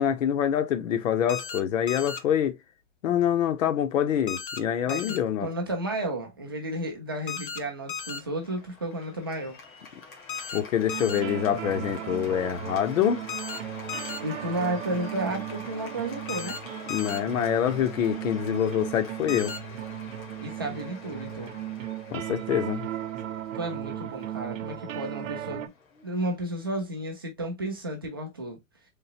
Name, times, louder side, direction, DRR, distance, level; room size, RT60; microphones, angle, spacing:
voice 1, 0.0-2.6 3.0-5.5 10.5-13.2 16.9-19.5 22.1-22.9, left 9 dB, 70° left, 0.8 m, -25 dB
sound 1, 1.3-1.6 1.9-2.2 4.3-4.6 4.9-5.2 7.3-7.6 7.9-8.2 10.3-10.6 10.9-11.2 13.3-13.6 13.9-14.2 16.3-16.6 16.9-17.2 19.3-19.6, left 5 dB, 40° left, 0.5 m, -35 dB
voice 2, 4.9-9.6 14.2-16.6 20.4-21.6 23.5-25.7 26.0-28.6, right 1 dB, 20° right, 0.4 m, -32 dB
Cheering / Applause, 8.0-27.2, left 4 dB, 85° left, 1.6 m, -47 dB
sound 2, 10.9-25.7, right 11 dB, 70° right, 0.7 m, -36 dB
3.8 x 3.2 x 2.7 m
supercardioid pair, 175°, 40 cm